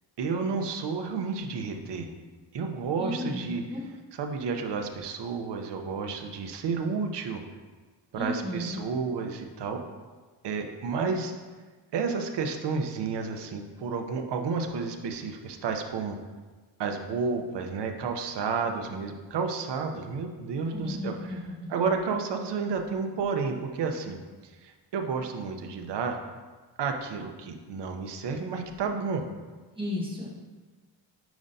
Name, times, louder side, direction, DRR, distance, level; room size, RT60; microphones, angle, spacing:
voice 1, 0.2-2.1 2.5-3.6 4.2-7.4 8.1-9.8 10.4-11.3 11.9-16.2 16.8-21.1 21.7-26.2 26.8-29.2, right 5 dB, 65° right, 4 dB, 0.8 m, -31 dB
voice 2, 3.0-3.8 8.1-8.8 20.7-22.0 29.7-30.4, left 1 dB, 10° right, -5 dB, 1.5 m, -34 dB
9.2 x 5.2 x 2.7 m, 1.4 s
wide cardioid pair, 155°, 45 cm